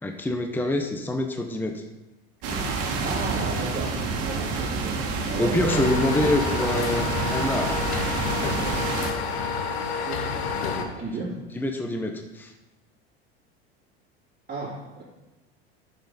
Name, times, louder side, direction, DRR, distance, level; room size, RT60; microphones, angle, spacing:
voice 1, 0.0-1.8 5.4-7.8 11.2-11.3 11.5-12.5, left 1 dB, 5° left, 4 dB, 0.8 m, -26 dB
sound 1, 2.4-9.1, right 4 dB, 50° right, 2.1 m, -28 dB
voice 2, 3.0-6.0 10.0-10.3 10.7-11.3 14.5-15.0, right 3 dB, 30° right, -7 dB, 3.0 m, -34 dB
sound 2, 5.7-10.8, left 5 dB, 80° left, 1.2 m, -29 dB
9.3 x 6.9 x 4.2 m, 1.0 s
hypercardioid pair, 95°, 31 cm